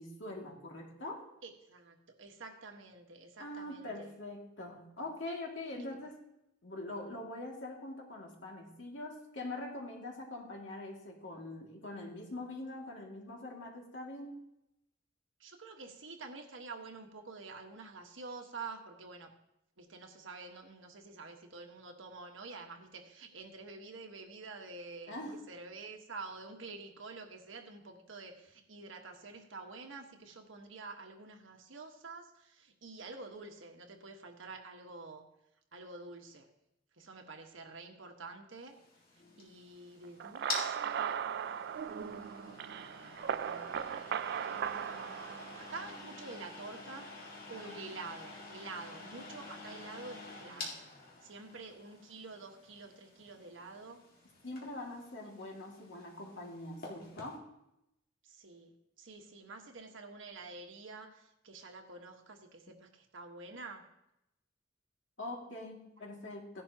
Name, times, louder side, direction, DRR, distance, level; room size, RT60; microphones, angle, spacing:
voice 1, 0.0-1.3 3.4-6.2 6.6-14.4 25.1-25.4 47.6-47.8 54.4-57.5 65.2-66.6, left 2 dB, 70° left, -1 dB, 2.4 m, -43 dB
voice 2, 1.4-4.1 5.8-5.9 15.4-19.3 19.8-35.2 35.7-36.5 37.0-38.8 39.4-41.2 41.9-43.1 44.5-47.1 47.5-50.8 51.2-54.0 58.2-58.7 59.0-63.9, right 3 dB, 85° right, 4 dB, 1.4 m, -48 dB
sound 1, 38.7-57.4, left 3 dB, 50° left, 2.1 m, -48 dB
sound 2, 40.2-46.0, right 8 dB, 60° right, 0.3 m, -38 dB
15.5 x 11.0 x 2.9 m, 0.84 s
head